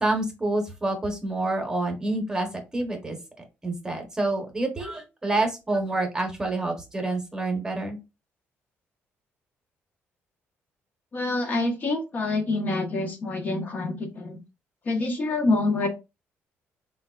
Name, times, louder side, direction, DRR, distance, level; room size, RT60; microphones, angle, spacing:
voice 1, 0.0-2.5 2.7-3.2 3.6-8.0, right 2 dB, 15° right, 3 dB, 0.8 m, -27 dB
voice 2, 11.1-14.4 14.9-15.9, left 2 dB, 40° left, 4 dB, 0.6 m, -26 dB
3.9 x 2.2 x 2.2 m, 0.26 s
cardioid pair, 130°, 5 cm